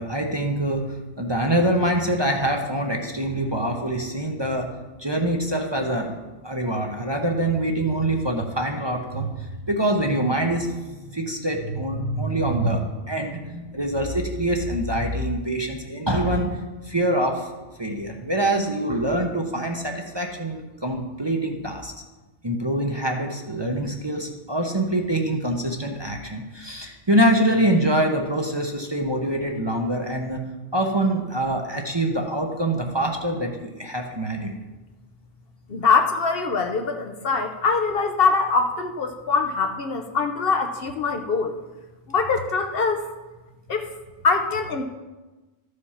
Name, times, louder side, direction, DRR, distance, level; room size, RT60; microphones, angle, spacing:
voice 1, 0.0-4.7 5.0-16.6 16.8-17.5 17.8-21.9 22.4-30.4 30.7-34.6, right 1 dB, 25° right, 1 dB, 0.8 m, -25 dB
voice 2, 35.7-41.5 42.1-43.0 43.7-43.9 44.2-44.8, left 4 dB, 55° left, 5 dB, 0.9 m, -23 dB
13.0 x 5.0 x 5.7 m, 1.2 s
omnidirectional pair, 1.2 m